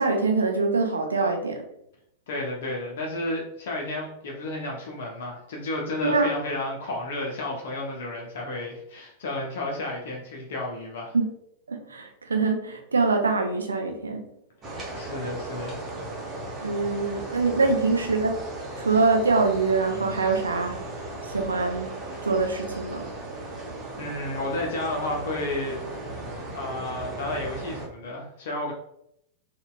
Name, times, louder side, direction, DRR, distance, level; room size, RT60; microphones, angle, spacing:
voice 1, 0.0-1.6 6.0-6.3 11.1-11.3 11.7-14.2 16.6-18.4 18.8-20.8 21.3-22.0 22.2-23.1, right 3 dB, 75° right, 3 dB, 0.5 m, -24 dB
voice 2, 2.3-11.2 14.9-15.8 17.6-17.8 24.0-25.8 26.5-28.7, left 2 dB, 55° left, -1 dB, 0.6 m, -32 dB
sound 1, 14.6-27.9, right 2 dB, 25° right, 0.8 m, -36 dB
4.0 x 2.3 x 2.3 m, 0.74 s
figure-of-eight pair, 90°, 0 cm